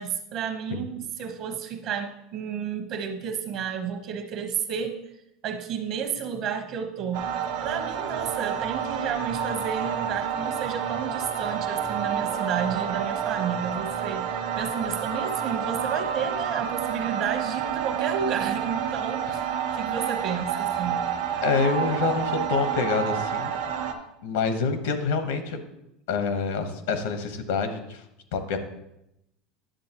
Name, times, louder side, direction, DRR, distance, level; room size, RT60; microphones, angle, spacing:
voice 1, 0.0-5.0 5.4-7.3 7.6-19.4 19.7-21.1, right 7 dB, 45° right, 6 dB, 0.9 m, -31 dB
sound 1, 7.1-23.9, right 8 dB, 70° right, 1.0 m, -29 dB
voice 2, 21.4-23.5 24.2-25.6 26.1-28.0 28.3-28.6, left 5 dB, 85° left, 8 dB, 1.0 m, -27 dB
10.0 x 7.3 x 2.9 m, 0.83 s
supercardioid pair, 160°, 0 cm